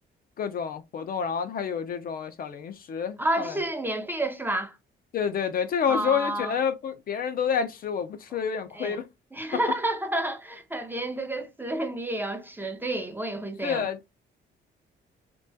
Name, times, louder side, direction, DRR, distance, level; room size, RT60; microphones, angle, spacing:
voice 1, 0.4-3.6 5.1-9.1 13.6-14.0, left 7 dB, 50° left, 0.4 m, -29 dB
voice 2, 3.2-4.8 5.9-6.5 8.7-9.0 9.3-13.9, right 1 dB, 10° right, 0.4 m, -30 dB
2.2 x 2.2 x 2.6 m
cardioid pair, 90°, 20 cm